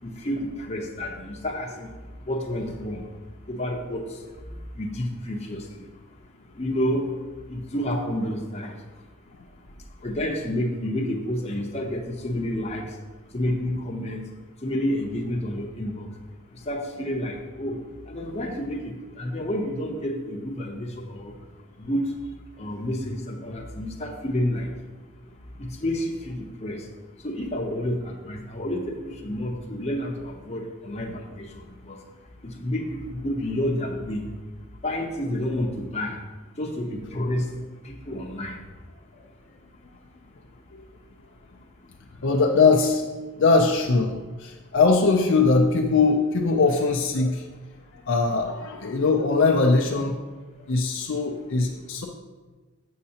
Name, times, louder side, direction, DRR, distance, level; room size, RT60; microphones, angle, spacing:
voice 1, 0.0-1.9 2.2-3.0 3.5-4.2 4.8-5.8 6.5-7.1 7.5-8.8 10.0-12.9 13.3-14.2 14.6-16.1 16.7-17.8 18.1-21.3 21.8-22.1 22.6-24.7 25.6-26.9 27.2-31.5 31.9-32.0 32.4-34.3 34.8-36.2 36.6-37.5 37.8-38.6, left 1 dB, 30° left, 0 dB, 0.7 m, -29 dB
voice 2, 42.2-43.1 43.4-44.1 44.4-47.5 48.1-50.2 50.7-52.1, left 3 dB, 55° left, 2 dB, 0.5 m, -21 dB
7.3 x 6.5 x 2.8 m, 1.3 s
head